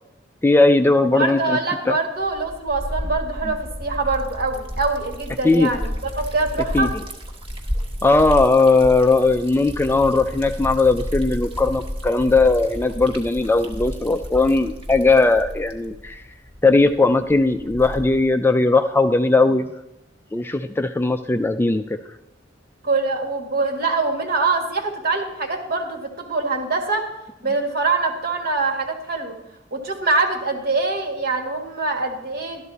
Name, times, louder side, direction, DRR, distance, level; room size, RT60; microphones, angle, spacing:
voice 1, 0.4-1.6 1.9-2.0 5.4-5.7 6.7-6.9 8.0-16.2 16.6-19.7 20.3-21.8, left 3 dB, 10° left, 8 dB, 0.4 m, -18 dB
voice 2, 1.0-6.9 22.8-27.1 27.4-29.4 29.7-32.7, right 3 dB, 55° right, 3 dB, 1.9 m, -24 dB
Liquid, 2.2-18.3, equal, 30° right, 1.4 m, -32 dB
12.5 x 12.5 x 4.1 m, 0.91 s
head